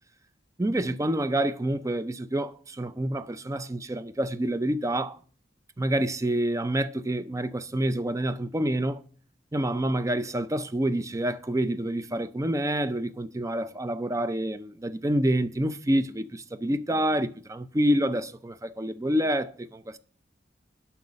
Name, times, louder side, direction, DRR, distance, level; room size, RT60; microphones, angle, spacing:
voice 1, 0.6-5.2 5.8-9.0 9.5-20.0, right 1 dB, 15° right, 0.5 m, -27 dB
8.0 x 5.8 x 7.4 m
head